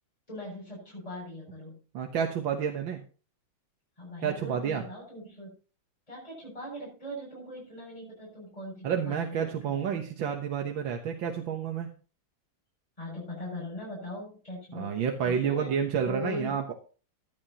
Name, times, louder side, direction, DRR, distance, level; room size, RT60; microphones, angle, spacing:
voice 1, 0.3-1.8 4.0-5.5 6.1-10.0 13.0-15.7 16.1-16.5, left 1 dB, 15° left, -6 dB, 7.6 m, -40 dB
voice 2, 1.9-3.0 4.2-4.9 8.8-11.9 14.7-16.7, right 7 dB, 70° right, 3 dB, 1.9 m, -30 dB
15.5 x 11.0 x 2.9 m, 0.36 s
omnidirectional pair, 2.2 m